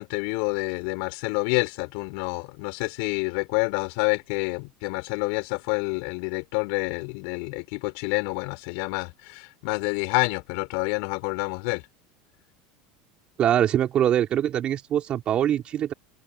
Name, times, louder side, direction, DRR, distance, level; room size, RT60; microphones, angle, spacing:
voice 1, 0.0-11.8, left 33 dB, 70° left, 7.2 m, -28 dB
voice 2, 13.4-15.9, right 10 dB, 40° right, 4.7 m, -23 dB
supercardioid pair, 105°, 3 cm